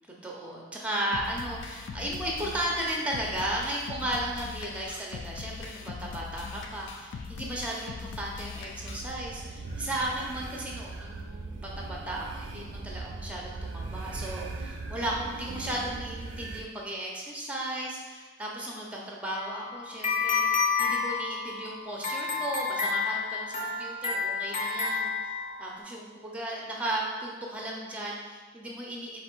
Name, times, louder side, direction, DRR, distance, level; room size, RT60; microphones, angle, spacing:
voice 1, 0.2-25.3 25.6-29.2, right 1 dB, 5° right, -2 dB, 0.5 m, -35 dB
sound 1, 1.1-9.1, left 4 dB, 70° left, 0.3 m, -41 dB
sound 2, 8.8-16.6, right 3 dB, 65° right, 0.4 m, -39 dB
sound 3, 19.3-25.8, left 5 dB, 40° left, 0.7 m, -30 dB
4.1 x 2.5 x 4.4 m, 1.4 s
head